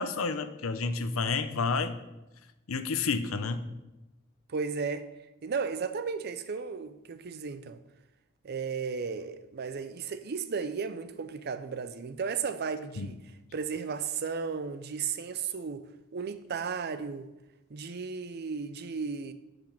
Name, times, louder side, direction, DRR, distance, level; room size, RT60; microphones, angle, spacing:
voice 1, 0.0-2.0 2.7-3.6 13.0-13.1, left 4 dB, 85° left, 0.7 m, -30 dB
voice 2, 4.5-5.1 5.4-7.8 8.4-13.2 13.5-15.8 16.1-17.3 17.7-19.3, right 5 dB, 50° right, 0.5 m, -34 dB
8.9 x 5.2 x 5.9 m
head